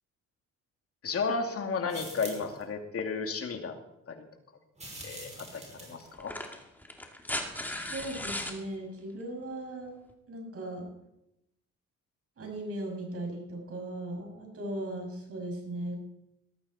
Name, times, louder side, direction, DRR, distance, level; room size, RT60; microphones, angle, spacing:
voice 1, 1.0-3.7 4.1-4.2 5.0-6.3, left 4 dB, 50° left, 4 dB, 2.6 m, -33 dB
sound 1, 1.9-2.6 4.8-6.1, right 2 dB, 25° right, 5.9 m, -45 dB
sound 2, 5.0-5.1 6.1-8.6 10.1-10.2, left 1 dB, 5° left, 2.3 m, -37 dB
voice 2, 7.5-9.9 10.3-10.9 12.4-16.0, right 1 dB, 50° right, 2 dB, 6.3 m, -38 dB
18.5 x 13.5 x 4.3 m, 0.84 s
cardioid pair, 90°, 30 cm